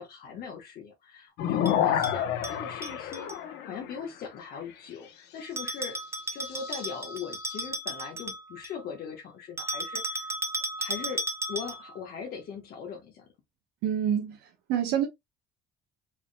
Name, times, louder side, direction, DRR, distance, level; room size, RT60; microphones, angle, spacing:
voice 1, 0.0-3.3 3.6-6.0 6.3-10.3 10.8-11.2 11.5-13.2, left 6 dB, 65° left, 1.2 m, -40 dB
sound 1, 1.4-4.0 6.5-7.7, left 10 dB, 90° left, 0.9 m, -29 dB
Bell, 1.7-3.4 5.6-8.8 9.6-12.0, right 1 dB, 15° right, 0.9 m, -35 dB
voice 2, 13.8-14.4 14.7-15.0, right 9 dB, 90° right, 1.0 m, -26 dB
4.7 x 3.6 x 2.2 m
cardioid pair, 110°, 17 cm